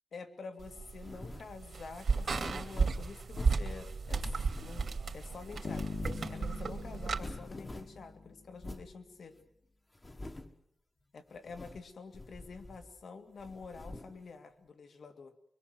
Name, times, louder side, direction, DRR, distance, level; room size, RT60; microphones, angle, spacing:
voice 1, 0.1-9.3 11.1-15.3, left 4 dB, 70° left, 7 dB, 2.4 m, -48 dB
sound 1, 0.6-7.2, right 4 dB, 60° right, 2.8 m, -34 dB
sound 2, 1.0-1.5 2.1-3.7 4.1-5.0 5.4-6.4 6.6-6.7 7.0-8.0 8.6-8.9 9.4-9.5 9.9-10.6 11.4-11.9 12.1-13.0 13.4-14.2, left 2 dB, 20° left, 1.5 m, -45 dB
sound 3, 5.6-8.7, left 3 dB, 50° left, 1.9 m, -43 dB
25.0 x 24.0 x 7.9 m, 0.75 s
wide cardioid pair, 170°, 0 cm